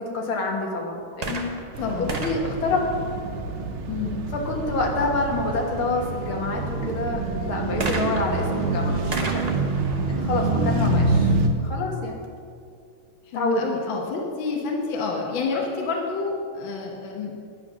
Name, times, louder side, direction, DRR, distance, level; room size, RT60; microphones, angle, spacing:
voice 1, 0.0-1.5 2.0-2.8 4.3-9.5 10.1-11.3 11.6-12.2 13.3-13.6, left 3 dB, 85° left, 0 dB, 2.4 m, -27 dB
sound 1, 1.1-3.7 7.8-11.4 12.2-12.3, right 3 dB, 35° right, 0.6 m, -34 dB
sound 2, 1.7-11.5, right 3 dB, 80° right, 1.8 m, -26 dB
voice 2, 1.8-2.1 3.9-4.2 13.3-17.3, left 4 dB, 70° left, 0 dB, 1.8 m, -28 dB
11.0 x 8.8 x 6.1 m, 2.3 s
omnidirectional pair, 2.2 m